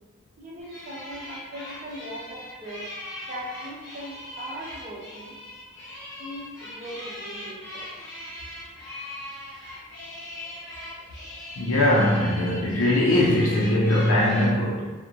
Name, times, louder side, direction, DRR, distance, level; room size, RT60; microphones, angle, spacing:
voice 1, 0.4-2.8 3.3-5.4 6.2-7.9, equal, 35° right, -6 dB, 0.7 m, -39 dB
sound 1, 0.6-14.5, left 1 dB, 15° left, 0.8 m, -40 dB
voice 2, 11.6-14.9, left 1 dB, 85° left, -4 dB, 0.4 m, -21 dB
2.4 x 2.1 x 2.8 m, 1.2 s
head